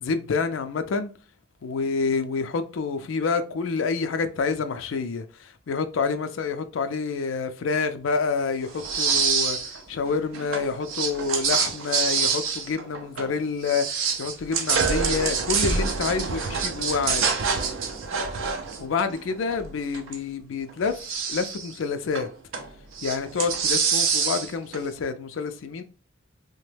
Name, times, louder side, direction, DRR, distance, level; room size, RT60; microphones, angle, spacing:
voice 1, 0.0-1.1 1.6-17.3 18.8-21.0 21.3-22.3 23.0-25.8, left 5 dB, 75° left, 0.4 m, -28 dB
sound 1, 8.7-9.8 10.1-13.4 13.6-20.2 20.7-21.7 22.2-22.7 23.0-24.8, right 5 dB, 80° right, 0.5 m, -26 dB
2.9 x 2.1 x 3.2 m
head